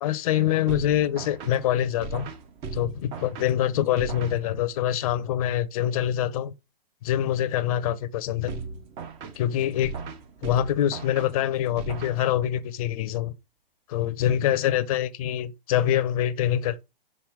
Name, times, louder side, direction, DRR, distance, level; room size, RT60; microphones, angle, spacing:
voice 1, 0.0-2.3 2.7-6.5 7.0-8.6 9.4-9.9 10.4-13.3 13.9-16.8, left 11 dB, 35° left, 0.6 m, -25 dB
sound 1, 0.7-4.9 8.5-12.7, right 5 dB, 20° right, 0.6 m, -38 dB
6.0 x 5.4 x 3.5 m
hypercardioid pair, 145°, 30 cm